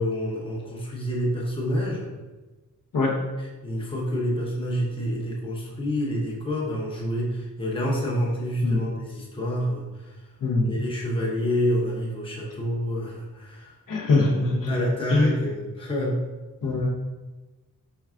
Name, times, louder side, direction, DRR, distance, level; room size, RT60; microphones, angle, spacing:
voice 1, 0.0-2.1 3.6-10.1 10.7-13.7 14.7-16.2, equal, 15° left, -3 dB, 0.7 m, -28 dB
voice 2, 10.4-10.8 13.9-14.7 15.1-15.4 16.6-16.9, left 3 dB, 70° left, 0 dB, 0.8 m, -22 dB
4.5 x 4.5 x 2.4 m, 1.2 s
wide cardioid pair, 175°, 34 cm